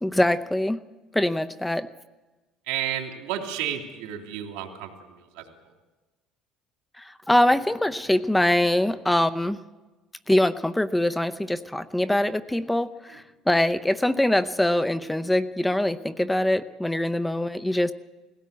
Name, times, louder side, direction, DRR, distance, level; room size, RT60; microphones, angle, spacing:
voice 1, 0.0-0.8 1.1-1.9 7.0-9.6 10.3-17.9, left 1 dB, 5° left, 13 dB, 0.7 m, -23 dB
voice 2, 2.7-5.4, right 10 dB, 90° right, 3 dB, 3.1 m, -32 dB
20.5 x 17.0 x 8.4 m, 1.2 s
cardioid pair, 120°, 0 cm